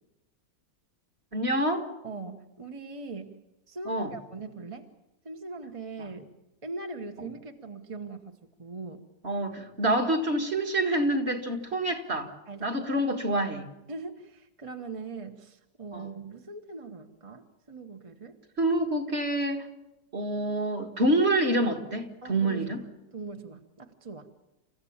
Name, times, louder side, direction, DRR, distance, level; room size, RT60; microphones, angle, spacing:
voice 1, 1.3-1.9 3.9-4.1 6.0-6.1 9.2-12.3 12.6-13.7 15.9-16.0 18.6-19.7 20.1-22.8, right 1 dB, 40° right, 2.1 m, -27 dB
voice 2, 2.0-3.4 3.7-4.9 5.2-6.3 6.6-9.0 12.5-12.8 13.9-18.4 22.2-22.7 23.1-24.3, right 3 dB, 25° right, 1.0 m, -41 dB
28.5 x 15.0 x 8.6 m
omnidirectional pair, 1.8 m